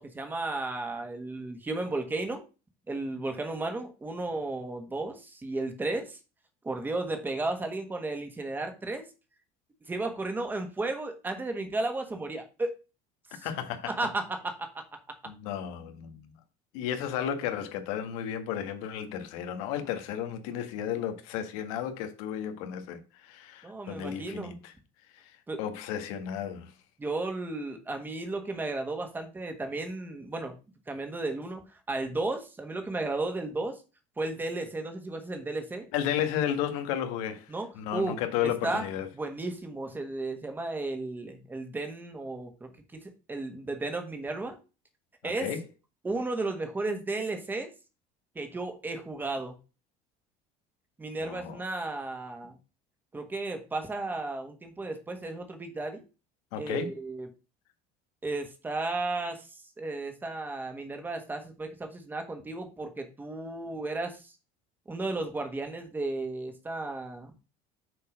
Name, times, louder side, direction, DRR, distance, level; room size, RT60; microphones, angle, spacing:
voice 1, 0.0-2.4 2.9-6.2 6.6-9.1 9.9-12.7 13.3-13.5 13.9-14.7 15.1-15.2 23.6-24.6 25.5-25.6 27.0-30.5 30.9-31.6 31.9-33.8 34.2-35.9 37.5-38.9 39.1-44.6 45.2-45.5 46.0-47.7 48.3-49.6 51.0-52.6 53.1-56.0 56.6-57.3 58.2-64.3 64.9-67.3, right 2 dB, 10° right, 1.4 m, -34 dB
voice 2, 13.4-13.9 15.2-16.2 16.7-24.7 25.1-25.2 25.6-26.7 35.9-39.1 45.2-45.6 51.2-51.6 56.5-56.9, left 9 dB, 90° left, 1.7 m, -33 dB
6.6 x 4.4 x 6.3 m
cardioid pair, 160°, 17 cm